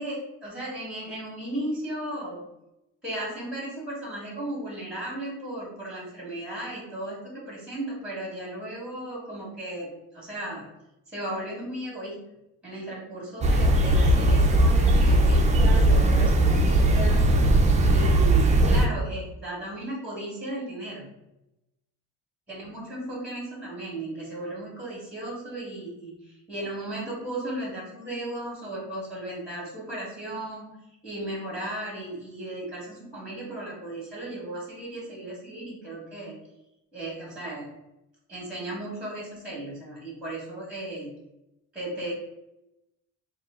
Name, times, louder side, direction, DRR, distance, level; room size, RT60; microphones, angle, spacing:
voice 1, 0.0-2.4 3.0-10.7 11.1-12.2 12.6-17.2 17.8-21.1 22.5-36.3 36.9-37.7 38.3-41.2 41.7-42.1, right 1 dB, 5° right, -3 dB, 1.5 m, -35 dB
sound 1, 13.4-18.9, right 1 dB, 20° right, 0.4 m, -19 dB
3.8 x 2.4 x 3.6 m, 0.90 s
cardioid pair, 130°, 33 cm